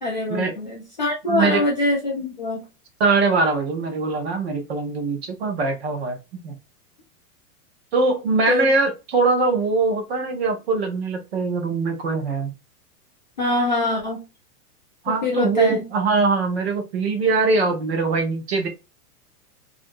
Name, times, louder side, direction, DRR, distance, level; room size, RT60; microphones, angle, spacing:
voice 1, 0.0-2.6 8.5-8.7 13.4-14.2 15.2-15.8, left 2 dB, 30° left, -4 dB, 0.4 m, -23 dB
voice 2, 1.3-1.6 3.0-6.6 7.9-12.5 15.0-18.7, right 4 dB, 45° right, 5 dB, 0.6 m, -22 dB
2.7 x 2.5 x 2.5 m, 0.27 s
supercardioid pair, 180°, 47 cm